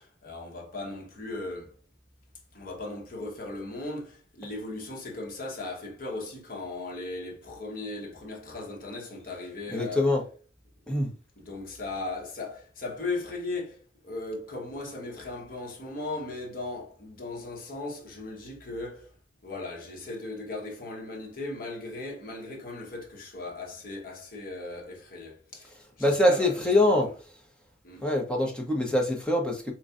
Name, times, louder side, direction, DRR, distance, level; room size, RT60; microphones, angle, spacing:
voice 1, 0.0-1.7 2.5-10.1 11.4-19.1 19.4-26.9 27.8-28.1, left 2 dB, 50° left, 1.0 m, -37 dB
voice 2, 9.7-10.2 10.9-11.1 26.0-27.1 28.0-29.7, left 1 dB, 5° left, 0.8 m, -24 dB
3.8 x 3.1 x 2.4 m
head